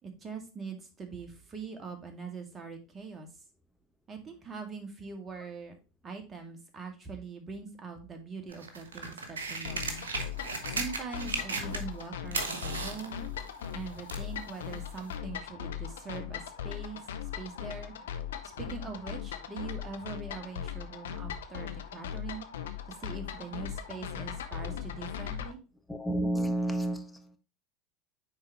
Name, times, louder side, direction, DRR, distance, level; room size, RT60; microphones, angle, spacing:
voice 1, 0.0-3.3 4.1-5.7 6.0-10.0 10.7-13.2 13.7-17.0 17.4-17.9 18.4-22.5 22.9-25.6, right 5 dB, 25° right, 4 dB, 2.0 m, -42 dB
sound 1, 8.5-12.0 12.3-14.3 15.1-15.2, right 4 dB, 80° right, 1.2 m, -36 dB
sound 2, 9.6-25.5, left 9 dB, 75° left, 0.7 m, -39 dB
voice 2, 25.9-27.4, right 1 dB, 5° left, 6 dB, 1.2 m, -30 dB
9.4 x 4.0 x 3.0 m, 0.31 s
hypercardioid pair, 80°, 0 cm